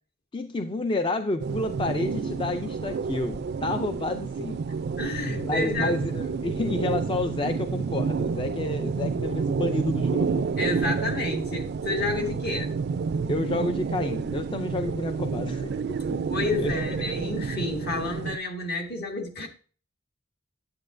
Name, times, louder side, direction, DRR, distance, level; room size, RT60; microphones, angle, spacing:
voice 1, 0.3-4.6 5.2-10.5 13.3-15.8 16.1-16.3 16.6-16.8 17.2-17.3, left 2 dB, 25° left, 0.4 m, -30 dB
sound 1, 1.4-18.4, right 5 dB, 55° right, 0.3 m, -29 dB
voice 2, 5.0-6.0 10.6-12.8 16.3-19.5, left 2 dB, 55° left, 1.9 m, -30 dB
9.7 x 8.6 x 2.5 m
head